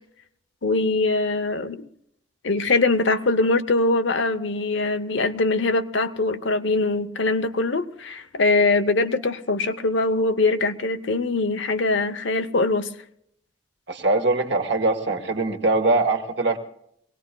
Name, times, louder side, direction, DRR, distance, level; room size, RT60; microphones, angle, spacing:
voice 1, 0.6-1.9 2.4-12.9, left 3 dB, 60° left, 10 dB, 0.8 m, -22 dB
voice 2, 13.9-16.6, right 2 dB, 55° right, 5 dB, 1.8 m, -22 dB
24.0 x 18.5 x 2.3 m, 0.72 s
head